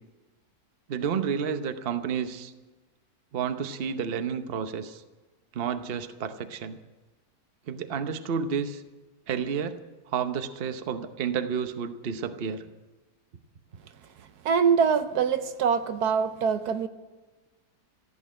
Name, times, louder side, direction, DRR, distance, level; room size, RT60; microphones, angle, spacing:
voice 1, 0.9-2.5 3.3-5.0 5.5-6.8 7.7-8.8 9.3-9.8 10.1-12.6, right 7 dB, 45° right, 9 dB, 0.9 m, -30 dB
voice 2, 14.4-16.9, right 6 dB, 75° right, 9 dB, 1.3 m, -24 dB
15.0 x 8.6 x 10.0 m, 1.2 s
omnidirectional pair, 1.7 m